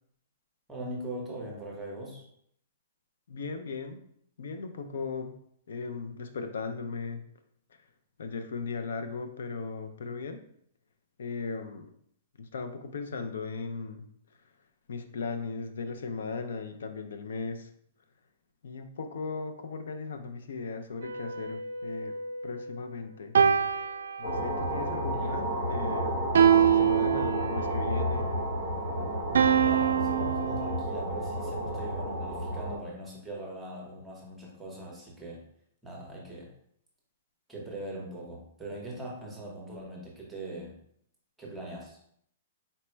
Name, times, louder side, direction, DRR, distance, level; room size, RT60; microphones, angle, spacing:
voice 1, 0.7-2.2 25.1-25.4 29.6-35.4 35.8-36.5 37.5-40.7 41.4-42.0, right 1 dB, 5° right, -3 dB, 0.7 m, -41 dB
voice 2, 3.3-4.0 4.4-5.4 5.7-7.2 8.2-10.4 11.2-11.9 12.4-14.0 14.9-17.7 18.6-22.2 22.4-23.3 24.2-26.2 26.5-28.3, left 4 dB, 80° left, 7 dB, 0.4 m, -37 dB
sound 1, 21.0-22.8 23.3-24.8 26.3-27.8 29.3-30.8, right 8 dB, 80° right, 0.3 m, -25 dB
sound 2, 24.2-32.8, equal, 60° left, 1.3 m, -31 dB
4.1 x 2.0 x 4.4 m, 0.68 s
hypercardioid pair, 180°, 0 cm